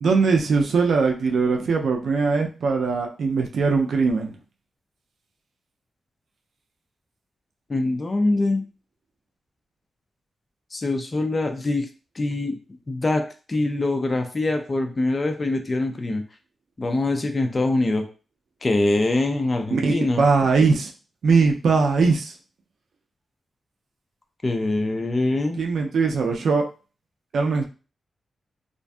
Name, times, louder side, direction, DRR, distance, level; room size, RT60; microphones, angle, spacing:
voice 1, 0.0-4.3 19.7-20.9 21.2-22.3 25.6-26.6 27.3-27.7, right 4 dB, 70° right, 2 dB, 0.4 m, -20 dB
voice 2, 7.7-8.6 10.7-11.9 12.2-12.6 12.9-13.2 13.5-16.2 16.8-18.1 18.6-20.2 24.4-25.6, left 2 dB, 25° left, 4 dB, 0.3 m, -23 dB
2.5 x 2.5 x 2.2 m, 0.35 s
wide cardioid pair, 145°, 0 cm